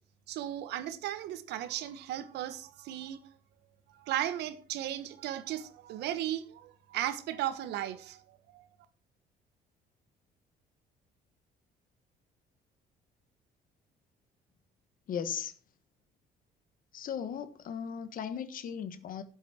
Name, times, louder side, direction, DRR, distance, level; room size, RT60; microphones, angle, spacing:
voice 1, 0.3-3.2 4.0-8.2 8.5-8.6, right 12 dB, 80° right, 1.4 m, -36 dB
voice 2, 15.1-15.5 16.9-19.2, left 8 dB, 55° left, 1.3 m, -37 dB
12.0 x 8.1 x 4.4 m
cardioid pair, 110°, 17 cm